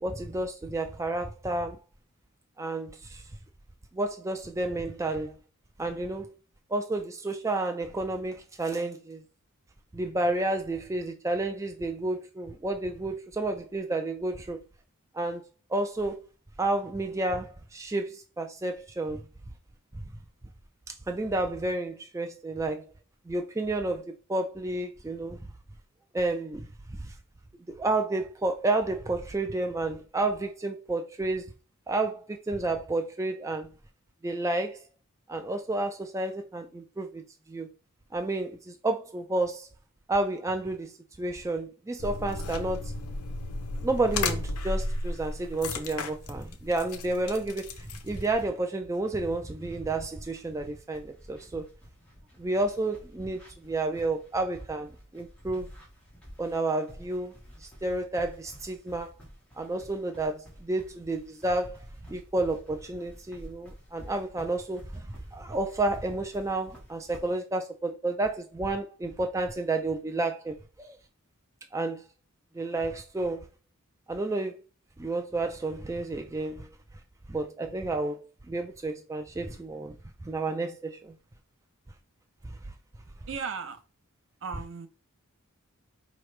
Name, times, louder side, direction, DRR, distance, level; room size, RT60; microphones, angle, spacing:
voice 1, 0.0-1.8 2.6-3.2 3.9-5.3 5.8-6.3 6.7-9.2 9.9-14.6 15.1-15.4 15.7-16.2 16.6-19.2 20.9-22.9 23.3-25.4 26.1-26.7 27.0-27.1 27.7-31.4 31.9-33.7 34.2-34.8 35.3-37.2 37.5-37.7 38.1-39.7 40.1-42.9 43.8-51.7 52.4-55.7 56.4-59.2 59.6-71.0 71.7-72.0 72.5-73.5 74.1-74.7 75.0-76.7 77.3-80.0 80.2-81.1, right 2 dB, 15° right, 0.3 m, -31 dB
sound 1, 42.0-48.3, left 2 dB, 80° left, 0.7 m, -34 dB
sound 2, 48.1-67.2, equal, 5° left, 1.5 m, -51 dB
voice 2, 83.3-83.8 84.4-84.9, right 5 dB, 60° right, 0.7 m, -35 dB
4.8 x 3.0 x 3.2 m
head